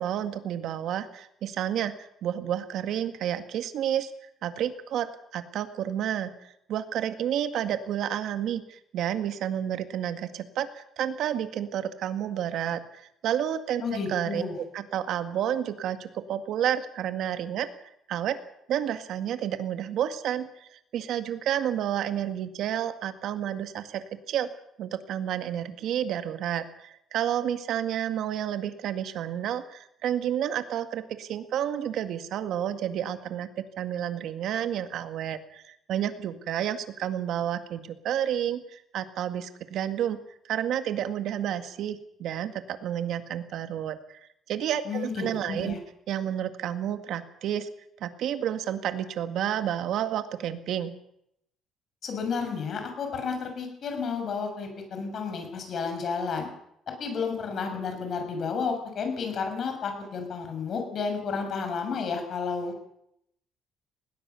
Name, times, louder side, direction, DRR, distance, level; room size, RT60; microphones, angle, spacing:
voice 1, 0.0-4.1 4.4-17.7 18.1-18.4 18.7-24.5 24.8-40.2 40.4-44.2 44.5-45.8 46.1-47.7 48.0-50.9, right 10 dB, 65° right, 9 dB, 1.9 m, -30 dB
voice 2, 13.8-14.6 44.9-45.8 52.0-56.5 57.0-62.8, left 5 dB, 50° left, 5 dB, 6.5 m, -31 dB
20.0 x 18.5 x 7.0 m, 0.76 s
cardioid pair, 125°, 0 cm